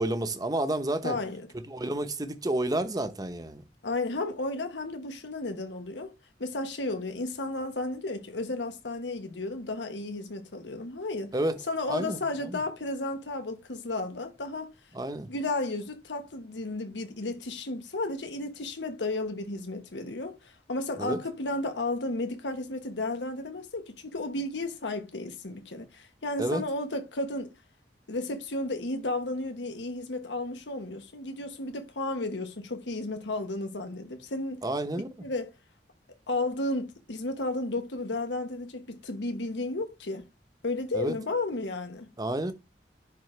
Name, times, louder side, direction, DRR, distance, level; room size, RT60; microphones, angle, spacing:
voice 1, 0.0-1.2 1.7-3.6 11.3-11.6 11.9-12.6 14.9-15.3 21.0-21.2 26.4-26.7 34.6-35.1 40.9-41.2 42.2-42.5, right 1 dB, 20° right, 0.8 m, -30 dB
voice 2, 1.0-1.4 3.8-6.1 6.4-11.3 11.7-14.7 15.3-27.5 28.1-34.6 35.2-35.5 36.3-40.3 40.6-42.1, left 2 dB, 90° left, 1.1 m, -33 dB
10.5 x 3.8 x 3.2 m
head